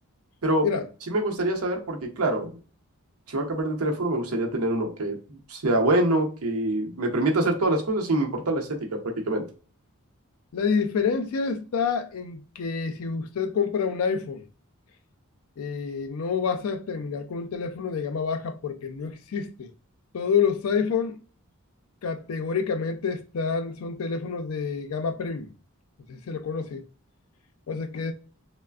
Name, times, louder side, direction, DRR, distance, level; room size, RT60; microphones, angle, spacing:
voice 1, 1.1-2.6 3.3-5.2 5.5-9.4, right 1 dB, 85° right, 0.7 m, -25 dB
voice 2, 10.5-14.5 15.6-19.7 20.1-21.2 22.0-25.5 26.1-26.8 27.7-28.1, left 6 dB, 70° left, 0.4 m, -28 dB
3.2 x 2.1 x 2.3 m
head